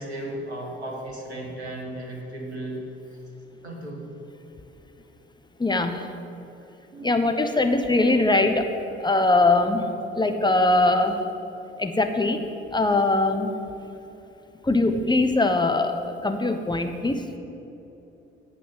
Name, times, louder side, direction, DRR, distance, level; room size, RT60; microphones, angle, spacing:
voice 1, 0.0-2.8 3.6-4.1 6.9-7.2, right 1 dB, 85° right, 0 dB, 1.6 m, -35 dB
voice 2, 5.6-6.1 7.0-8.7 9.0-11.2 11.8-12.4 12.7-13.6 14.6-17.3, left 2 dB, 15° left, 6 dB, 1.2 m, -22 dB
17.5 x 6.0 x 7.4 m, 3.0 s
figure-of-eight pair, 50°, 32 cm